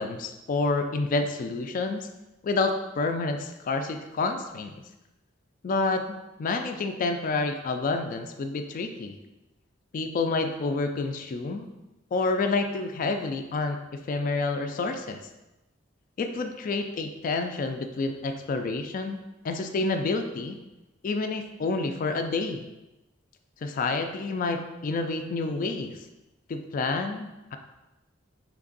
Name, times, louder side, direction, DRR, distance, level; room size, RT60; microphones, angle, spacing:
voice 1, 0.0-2.1 2.4-4.7 5.6-9.1 9.9-11.7 12.1-15.2 16.2-19.2 19.4-20.6 21.0-22.6 23.6-26.0 26.5-27.6, left 3 dB, 45° left, 6 dB, 0.3 m, -29 dB
3.4 x 3.2 x 3.9 m, 1.0 s
head